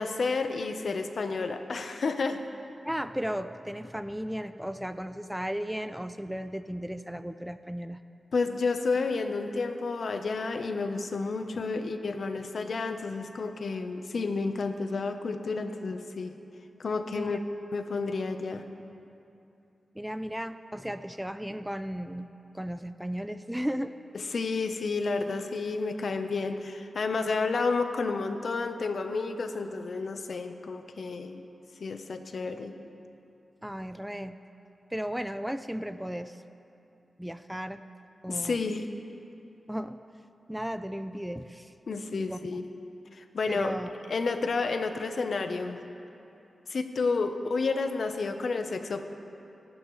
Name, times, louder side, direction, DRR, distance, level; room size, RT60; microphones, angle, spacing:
voice 1, 0.0-2.4 8.3-16.3 16.8-17.4 17.7-18.7 24.1-31.4 31.8-32.7 38.3-38.9 41.9-42.6 43.1-43.8 44.1-45.8 46.7-49.0, left 4 dB, 65° left, 7 dB, 0.9 m, -31 dB
voice 2, 2.8-8.0 11.5-11.6 17.1-17.4 19.9-22.3 22.5-23.9 33.6-34.4 34.9-36.4 37.2-37.8 38.2-38.6 39.7-40.0 40.5-41.7 42.2-42.4 43.5-43.9, equal, 5° right, 11 dB, 0.4 m, -35 dB
25.0 x 12.0 x 3.2 m, 2.8 s
wide cardioid pair, 85°, 0 cm